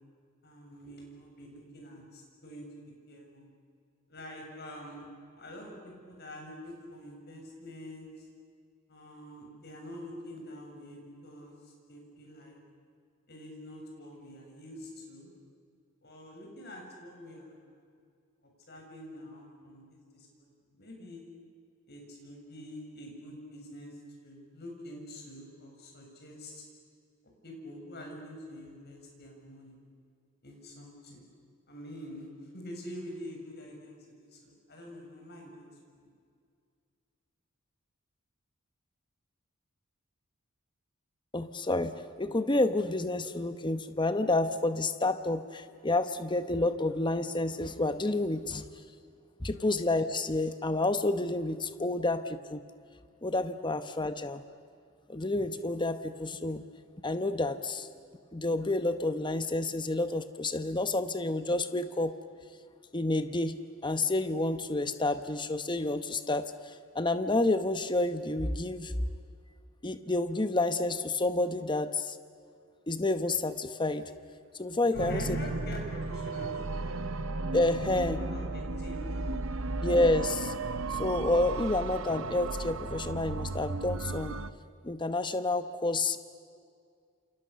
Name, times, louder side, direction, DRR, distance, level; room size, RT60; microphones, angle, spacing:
voice 1, 0.4-3.5 4.1-5.1 5.4-8.3 8.9-12.6 13.3-15.3 16.0-17.8 18.7-20.5 20.7-21.2 21.9-26.6 27.4-29.8 30.4-31.3 31.7-35.7 36.0-36.1 49.5-49.7 74.9-77.3 77.9-79.9, left 1 dB, 50° left, 1 dB, 7.0 m, -46 dB
voice 2, 41.3-48.6 49.4-52.6 53.2-54.4 55.1-56.6 57.0-57.9 58.3-62.1 62.9-68.9 69.8-72.2 72.9-74.0 74.6-75.2 77.5-78.2 79.8-80.5 80.9-84.3 84.8-86.2, left 2 dB, 20° left, 10 dB, 1.0 m, -29 dB
sound 1, 74.9-84.5, right 3 dB, 65° right, 1.0 m, -34 dB
28.5 x 28.5 x 6.9 m, 2.2 s
head